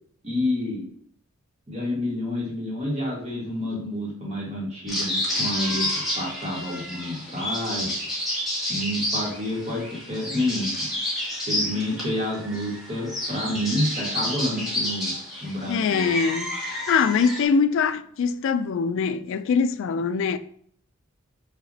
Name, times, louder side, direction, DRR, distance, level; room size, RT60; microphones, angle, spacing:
voice 1, 0.2-0.8 1.7-5.9 6.2-8.0 8.7-10.8 11.5-15.1 15.4-16.1, left 1 dB, 30° right, 1.6 m, -29 dB
sound 1, 4.9-17.5, left 1 dB, ahead, 1.6 m, -30 dB
voice 2, 15.7-20.4, left 5 dB, 65° left, 0.3 m, -23 dB
6.0 x 2.8 x 2.7 m
head